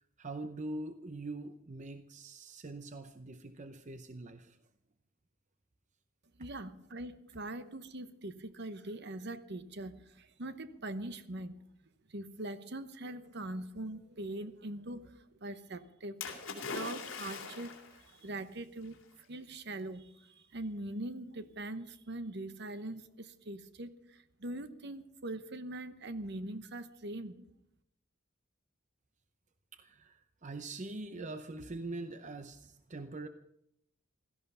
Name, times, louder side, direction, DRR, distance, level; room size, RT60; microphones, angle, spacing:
voice 1, 0.2-4.6 29.7-33.3, right 2 dB, 35° right, 9 dB, 0.7 m, -43 dB
voice 2, 6.4-11.5 12.1-15.1 15.4-19.0 19.3-27.5, right 1 dB, 55° right, 11 dB, 1.0 m, -42 dB
Splash splatter, 16.2-18.0 18.9-19.0, left 5 dB, 70° left, 2.9 m, -41 dB
16.5 x 13.5 x 5.5 m, 0.78 s
head